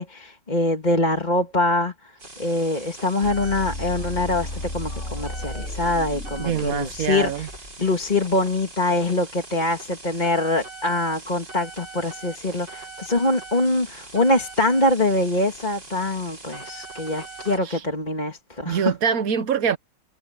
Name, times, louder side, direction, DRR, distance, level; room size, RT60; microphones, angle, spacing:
voice 1, 0.0-2.1 2.4-7.5 7.8-18.9, left 2 dB, 25° left, 2.2 m, -24 dB
sound 1, 2.2-17.6, right 3 dB, 75° right, 7.1 m, -41 dB
sound 2, 3.2-8.1, left 1 dB, 40° left, 4.5 m, -34 dB
voice 2, 6.4-7.5 17.6-17.8 18.6-19.8, right 8 dB, 55° right, 1.4 m, -24 dB
omnidirectional pair, 1.9 m